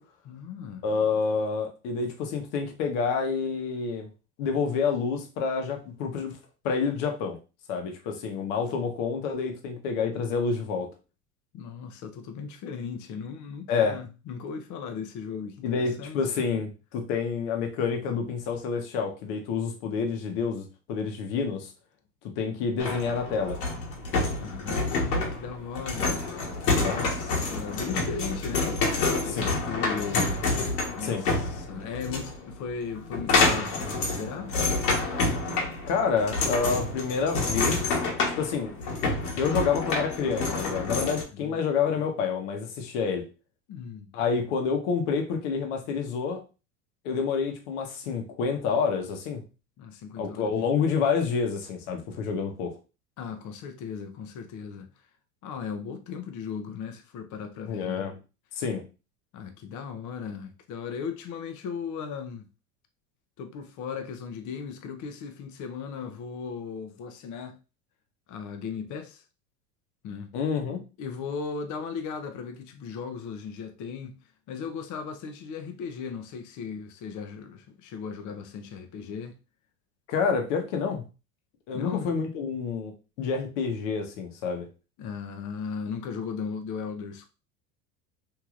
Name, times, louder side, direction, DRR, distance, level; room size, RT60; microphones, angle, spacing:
voice 1, 0.2-0.8 11.5-16.5 24.4-26.2 26.9-28.8 29.2-30.4 30.9-34.5 41.3-41.6 43.7-44.1 49.8-50.7 53.2-54.9 55.4-58.0 59.3-62.4 63.4-67.6 68.3-69.2 70.0-70.3 71.0-74.2 74.5-79.4 81.7-82.1 85.0-87.3, left 6 dB, 40° left, 0.6 m, -37 dB
voice 2, 0.8-4.1 4.4-6.3 6.6-7.4 7.7-10.9 13.7-14.0 15.6-21.7 22.4-23.6 26.8-27.0 29.2-29.5 31.0-31.2 35.9-38.0 38.4-38.7 39.4-43.2 44.1-46.4 47.0-49.4 50.2-52.8 57.7-58.1 58.6-58.8 70.3-70.8 80.1-81.0 81.7-84.7, left 5 dB, 65° left, 1.0 m, -28 dB
sound 1, 22.8-41.2, left 3 dB, 85° left, 1.3 m, -28 dB
3.1 x 2.8 x 2.4 m
hypercardioid pair, 95°, 47 cm